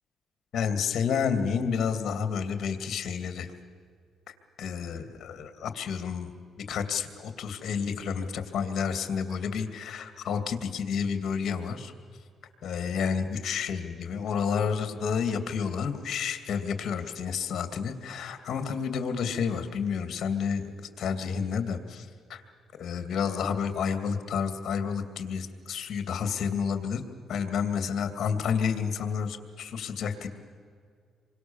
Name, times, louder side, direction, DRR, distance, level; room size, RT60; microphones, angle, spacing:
voice 1, 0.5-3.5 4.3-6.3 6.7-11.9 12.6-22.4 22.8-27.0 27.3-30.3, left 6 dB, 60° left, 8 dB, 2.7 m, -30 dB
28.0 x 24.5 x 7.3 m, 2.1 s
cardioid pair, 90°, 0 cm